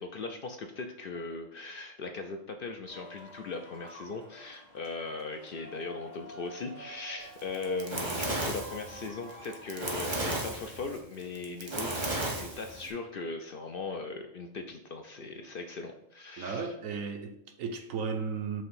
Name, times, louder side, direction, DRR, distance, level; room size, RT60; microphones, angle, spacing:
voice 1, 0.0-16.7, left 3 dB, 60° left, 0.6 m, -39 dB
sound 1, 2.9-10.1, equal, 40° left, 2.2 m, -50 dB
Fire, 7.4-12.9, right 2 dB, 25° right, 0.7 m, -34 dB
voice 2, 16.4-18.6, right 5 dB, 85° right, 1.1 m, -35 dB
5.3 x 3.4 x 5.5 m
omnidirectional pair, 1.3 m